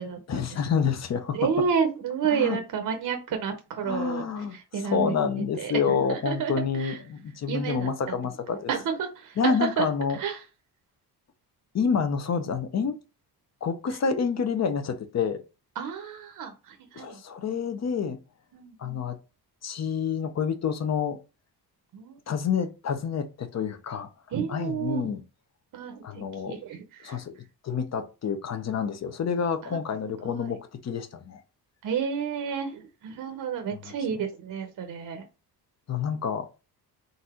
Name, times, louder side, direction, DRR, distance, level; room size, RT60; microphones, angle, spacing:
voice 1, 0.3-1.7 2.2-2.6 3.8-8.7 9.4-10.2 11.7-13.0 13.6-15.4 16.9-18.2 18.8-19.2 19.6-21.2 22.3-24.1 24.5-25.2 26.0-26.6 27.0-27.3 27.6-31.4 33.8-34.0 35.9-36.5, left 6 dB, 40° left, 0.6 m, -28 dB
voice 2, 1.3-4.2 4.7-5.1 5.6-5.8 6.1-6.5 6.8-6.9 7.5-7.9 8.7-9.1 9.4-9.8 10.2-10.4 15.8-16.5 16.9-17.2 18.5-19.0 21.9-22.1 24.3-25.1 25.7-26.8 27.0-27.2 30.2-30.6 31.8-35.2, right 7 dB, 55° right, 0.8 m, -30 dB
4.0 x 2.5 x 4.3 m
cardioid pair, 140°, 40 cm